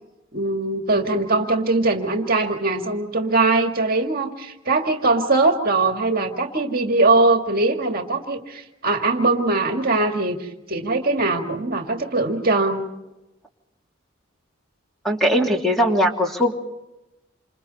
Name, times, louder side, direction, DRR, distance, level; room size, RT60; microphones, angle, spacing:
voice 1, 0.3-12.8, right 3 dB, 45° right, 4 dB, 2.0 m, -21 dB
voice 2, 15.0-16.5, equal, ahead, 0 dB, 2.8 m, -19 dB
28.5 x 27.0 x 4.2 m, 0.95 s
head